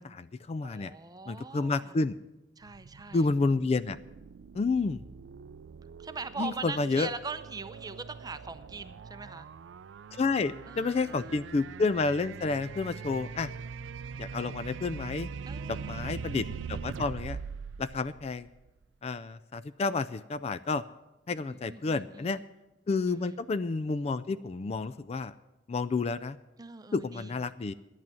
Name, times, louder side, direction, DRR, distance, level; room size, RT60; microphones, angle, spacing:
voice 1, 0.0-0.9 1.3-2.2 3.1-4.0 4.5-5.0 6.4-7.1 10.1-13.5 14.2-15.3 15.7-17.4 17.8-18.5 19.0-20.8 21.3-22.4 22.9-25.3 25.7-26.4 26.9-27.7, left 3 dB, 35° left, 15 dB, 0.3 m, -30 dB
voice 2, 0.6-1.9 2.6-3.3 6.0-9.5 10.7-11.4 15.5-16.2 21.3-22.4 23.1-23.3 26.6-27.3, right 4 dB, 20° right, 11 dB, 0.6 m, -42 dB
sound 1, 2.6-18.8, right 5 dB, 90° right, 0.4 m, -42 dB
10.5 x 8.6 x 8.9 m, 0.98 s
head